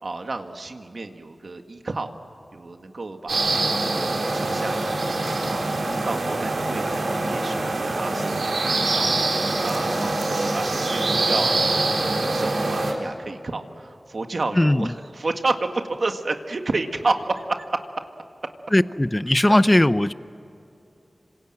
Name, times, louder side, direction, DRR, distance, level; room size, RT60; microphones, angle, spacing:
voice 1, 0.0-2.1 2.5-4.9 5.4-8.5 8.9-9.1 9.6-17.8 19.5-19.6, right 3 dB, 65° right, 5 dB, 1.8 m, -30 dB
sound 1, 3.3-12.9, right 2 dB, 90° right, 4.1 m, -24 dB
voice 2, 14.5-15.0 18.7-20.1, left 1 dB, 20° left, 14 dB, 0.7 m, -18 dB
26.5 x 26.5 x 7.7 m, 2.7 s
wide cardioid pair, 70°, 0 cm